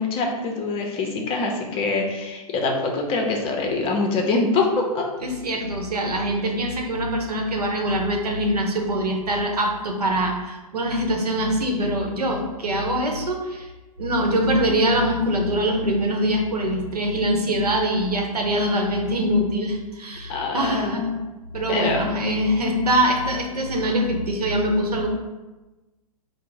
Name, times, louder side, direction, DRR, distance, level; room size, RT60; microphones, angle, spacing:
voice 1, 0.0-5.1 20.3-21.0 21.7-22.0, left 3 dB, 30° left, 1 dB, 0.6 m, -24 dB
voice 2, 5.2-13.7 14.0-21.2 21.5-25.1, equal, 85° right, 2 dB, 0.8 m, -23 dB
4.5 x 2.0 x 3.8 m, 1.1 s
hypercardioid pair, 115°, 19 cm